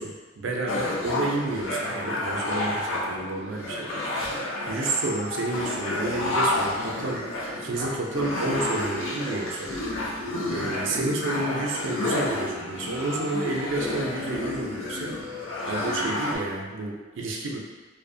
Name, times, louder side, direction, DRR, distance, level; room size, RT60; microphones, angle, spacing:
voice 1, 0.0-7.3 7.5-9.7 10.5-17.6, right 2 dB, 70° right, 0 dB, 0.4 m, -30 dB
sound 1, 0.7-16.4, left 1 dB, 75° left, 0.4 m, -30 dB
2.7 x 2.0 x 2.6 m, 1.3 s
head